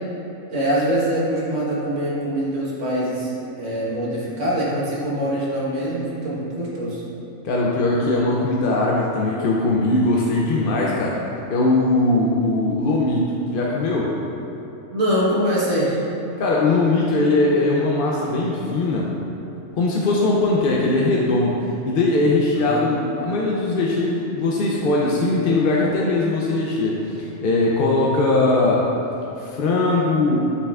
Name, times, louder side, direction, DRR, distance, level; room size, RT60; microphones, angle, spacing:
voice 1, 0.5-3.3 3.6-7.0 14.9-16.0 22.6-22.8, equal, 70° right, -7 dB, 1.7 m, -23 dB
voice 2, 7.4-11.2 11.5-14.1 16.4-19.1 19.7-21.6 21.9-28.9 29.4-30.5, left 2 dB, 55° left, -3 dB, 0.7 m, -20 dB
8.1 x 5.5 x 2.4 m, 2.9 s
omnidirectional pair, 1.3 m